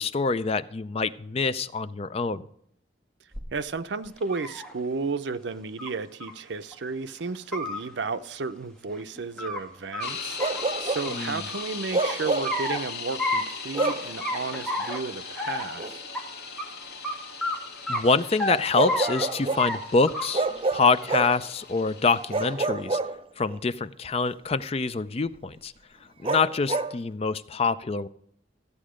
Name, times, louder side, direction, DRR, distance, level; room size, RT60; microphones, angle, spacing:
voice 1, 0.0-2.4 11.1-11.4 17.9-20.5 20.7-23.0 23.4-25.7 26.2-28.1, left 4 dB, 35° left, 14 dB, 0.4 m, -25 dB
sound 1, 3.3-3.4 4.1-4.7 5.8-5.9 6.2-6.3 6.7-6.8 7.4-7.8 8.9-9.6 9.9-10.1 10.4-11.6 12.0-12.8 13.2-13.4 13.8-13.9 14.2-15.0 15.4-15.7 16.1-16.2 16.6-16.7 17.0-17.1 17.4-17.6 17.9-18.6 18.9-19.3 19.6-19.8 20.1-20.5 20.9-21.4 22.2-22.7, left 1 dB, 5° left, 1.7 m, -31 dB
voice 2, 3.5-10.4 10.8-16.0, right 4 dB, 80° right, 12 dB, 0.6 m, -33 dB
sound 2, 10.0-22.5, left 5 dB, 60° left, 2.0 m, -39 dB
Bark, 10.4-11.1 11.9-12.6 13.7-14.1 15.8-16.0 18.7-19.7 20.3-21.4 22.3-23.6 26.2-27.0, right 3 dB, 30° right, 0.5 m, -28 dB
13.5 x 8.5 x 5.0 m, 0.70 s
head